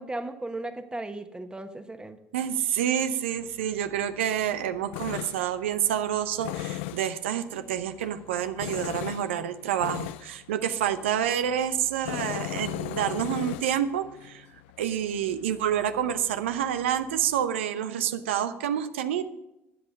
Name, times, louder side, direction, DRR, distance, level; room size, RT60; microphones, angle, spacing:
voice 1, 0.0-2.2, right 2 dB, 15° right, 8 dB, 1.3 m, -36 dB
voice 2, 2.3-14.5 14.8-19.2, right 10 dB, 85° right, 11 dB, 0.7 m, -28 dB
Tools, 3.4-17.5, left 15 dB, 75° left, 0.4 m, -40 dB
13.0 x 8.5 x 5.3 m, 0.91 s
hypercardioid pair, 65°, 6 cm